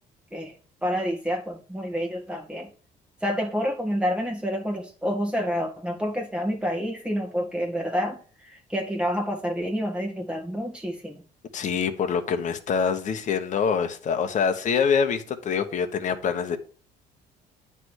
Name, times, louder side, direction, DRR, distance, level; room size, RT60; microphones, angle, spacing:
voice 1, 0.8-2.7 3.2-11.2, equal, 5° right, 1.8 m, -28 dB
voice 2, 11.5-16.6, left 6 dB, 45° left, 1.0 m, -25 dB
9.6 x 3.4 x 6.3 m
cardioid pair, 110°, 17 cm